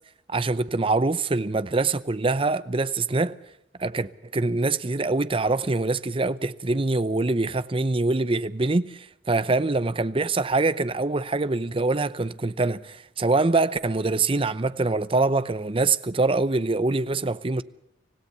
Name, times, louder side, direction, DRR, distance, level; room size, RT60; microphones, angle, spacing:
voice 1, 0.3-3.4 3.8-17.6, right 3 dB, 30° right, 0.7 m, -24 dB
25.5 x 16.5 x 6.8 m
head